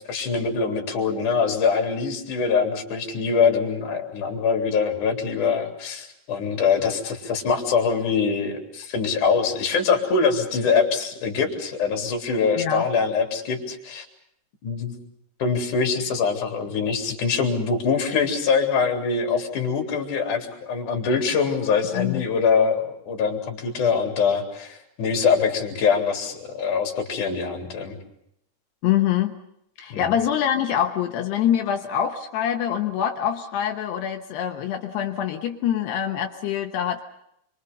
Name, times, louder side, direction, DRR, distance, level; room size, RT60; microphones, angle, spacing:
voice 1, 0.0-14.1 14.6-14.9 15.4-28.0 29.9-30.1, left 5 dB, 40° left, 2 dB, 4.6 m, -23 dB
voice 2, 12.6-12.9 21.9-22.2 28.8-29.4 29.8-37.0, left 10 dB, 70° left, 5 dB, 2.7 m, -25 dB
29.5 x 24.5 x 5.5 m, 0.75 s
omnidirectional pair, 5.7 m